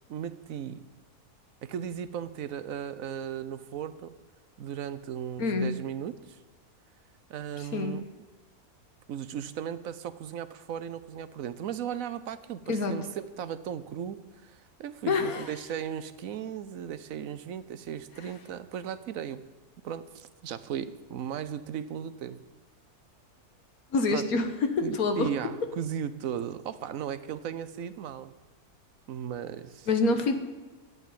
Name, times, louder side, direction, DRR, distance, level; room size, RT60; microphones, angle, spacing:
voice 1, 0.1-0.8 1.6-4.1 4.6-6.4 7.3-8.0 9.1-19.4 19.8-22.4 24.1-24.2 24.8-28.3 29.1-29.9, right 9 dB, 65° right, 13 dB, 1.1 m, -36 dB
voice 2, 5.4-5.7 7.6-8.0 12.7-12.9 15.1-15.5 18.2-18.3 23.9-25.3 29.9-30.4, left 3 dB, 70° left, 7 dB, 1.7 m, -27 dB
12.0 x 8.3 x 9.2 m, 1.2 s
omnidirectional pair, 1.6 m